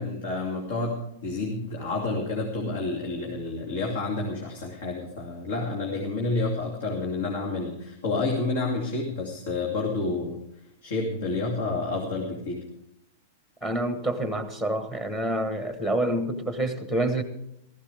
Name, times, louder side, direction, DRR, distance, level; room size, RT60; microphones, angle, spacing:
voice 1, 0.0-10.4 10.8-12.7, left 3 dB, 75° left, 0 dB, 2.7 m, -29 dB
voice 2, 13.6-17.2, right 1 dB, 10° left, 8 dB, 1.2 m, -27 dB
16.0 x 15.0 x 3.5 m, 0.79 s
supercardioid pair, 170°, 0 cm